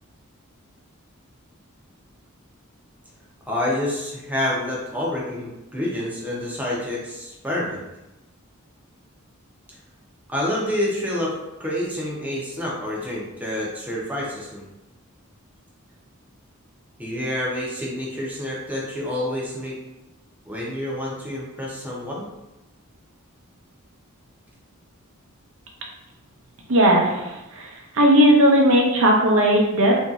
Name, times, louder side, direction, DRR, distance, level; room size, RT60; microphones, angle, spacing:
voice 1, 3.5-7.8 10.3-14.6 17.0-19.8 20.5-22.3, left 1 dB, 5° right, -5 dB, 0.6 m, -28 dB
voice 2, 26.7-30.0, equal, 60° right, 0 dB, 0.6 m, -17 dB
2.9 x 2.7 x 2.4 m, 0.97 s
head